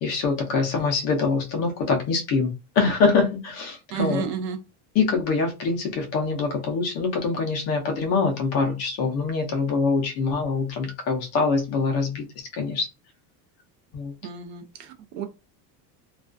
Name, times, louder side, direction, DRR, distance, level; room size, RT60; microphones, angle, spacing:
voice 1, 0.0-4.3 4.9-12.9 13.9-14.1, left 4 dB, 35° left, 0.5 m, -24 dB
voice 2, 3.9-4.6 14.2-15.2, right 7 dB, 55° right, 0.5 m, -31 dB
2.3 x 2.2 x 2.4 m
cardioid pair, 180°, 43 cm